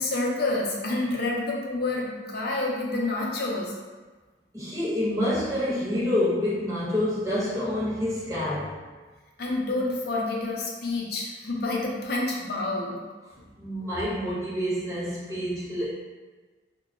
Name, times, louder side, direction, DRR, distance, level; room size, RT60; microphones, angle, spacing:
voice 1, 0.0-3.7 9.4-13.0, left 2 dB, 60° left, -3 dB, 0.5 m, -28 dB
voice 2, 4.5-8.8 13.6-15.9, left 1 dB, 20° right, -10 dB, 0.9 m, -27 dB
2.2 x 2.0 x 3.6 m, 1.3 s
head